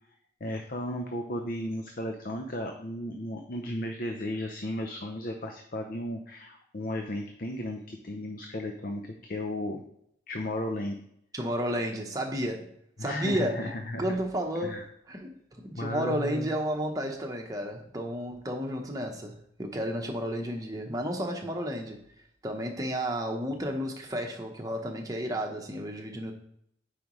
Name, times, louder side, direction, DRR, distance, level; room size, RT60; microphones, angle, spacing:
voice 1, 0.4-9.8 10.3-11.0 13.0-14.2 14.6-14.8 15.7-16.5, left 1 dB, 50° left, 4 dB, 0.7 m, -34 dB
voice 2, 11.3-12.7 13.0-13.7 14.0-14.8 15.1-22.0 22.4-26.3, equal, 20° right, 2 dB, 1.0 m, -32 dB
9.2 x 5.0 x 3.1 m, 0.70 s
head